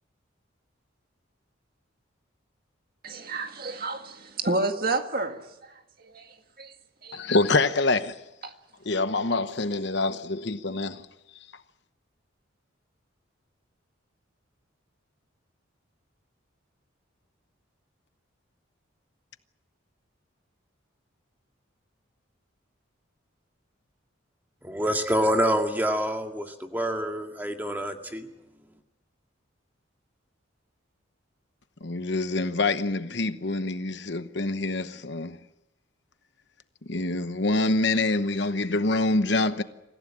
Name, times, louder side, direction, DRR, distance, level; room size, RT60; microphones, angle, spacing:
voice 1, 3.0-5.7 6.0-6.7 7.0-7.2 8.4-8.5, right 2 dB, 45° right, 1.9 m, -30 dB
voice 2, 7.1-8.1 8.8-11.0 31.8-35.4 36.9-39.6, left 2 dB, 60° left, 1.0 m, -26 dB
voice 3, 24.6-28.3, equal, 10° right, 2.0 m, -26 dB
25.5 x 15.5 x 10.0 m
head